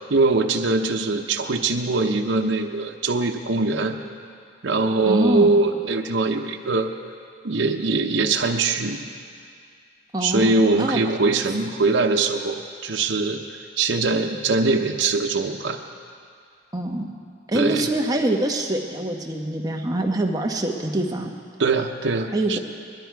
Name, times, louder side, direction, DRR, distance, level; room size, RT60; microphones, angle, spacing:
voice 1, 0.1-4.0 4.6-6.9 7.4-9.0 10.2-13.4 13.8-15.8 17.5-17.9 21.6-22.6, right 3 dB, 80° right, 2 dB, 0.8 m, -22 dB
voice 2, 5.1-5.5 10.1-10.5 10.8-11.0 16.7-17.1 17.5-21.3 22.3-22.6, right 1 dB, 20° right, 1 dB, 1.1 m, -24 dB
20.5 x 12.5 x 4.6 m, 2.2 s
head